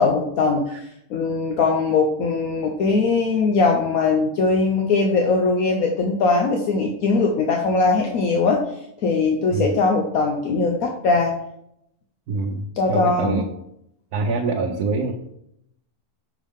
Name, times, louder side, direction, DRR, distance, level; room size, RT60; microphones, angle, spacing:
voice 1, 0.0-8.6 9.0-11.3 12.8-13.4, left 4 dB, 70° left, 2 dB, 1.2 m, -20 dB
voice 2, 12.3-13.4 14.1-15.1, right 3 dB, 90° right, 2 dB, 1.2 m, -24 dB
6.2 x 5.8 x 3.6 m, 0.75 s
omnidirectional pair, 1.6 m